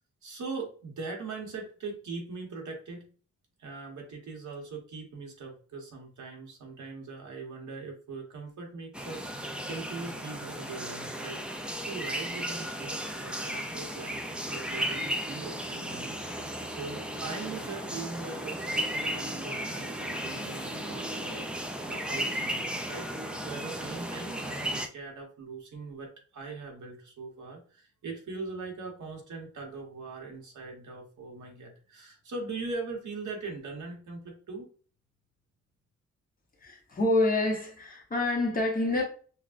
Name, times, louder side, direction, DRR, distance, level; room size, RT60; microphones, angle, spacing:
voice 1, 0.2-3.1 3.6-14.2 14.5-16.2 16.4-34.7, right 3 dB, 80° right, 1.0 m, -41 dB
sound 1, 8.9-24.9, right 1 dB, 5° right, 0.3 m, -35 dB
voice 2, 36.6-39.0, left 2 dB, 30° left, 1.0 m, -27 dB
5.8 x 2.1 x 2.5 m
wide cardioid pair, 165°, 29 cm